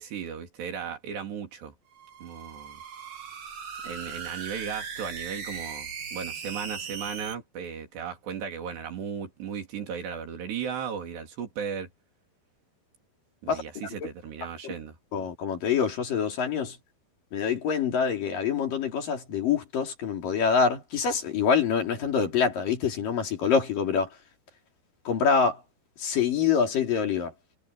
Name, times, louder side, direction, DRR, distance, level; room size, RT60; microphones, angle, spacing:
voice 1, 0.0-1.7 2.2-2.8 3.8-11.9 13.4-15.0, right 7 dB, 80° right, 5.6 m, -36 dB
sound 1, 1.9-7.3, right 6 dB, 50° right, 4.2 m, -38 dB
voice 2, 15.1-16.8 17.3-24.1 25.1-25.6 26.0-27.3, left 6 dB, 55° left, 4.5 m, -25 dB
omnidirectional pair, 4.8 m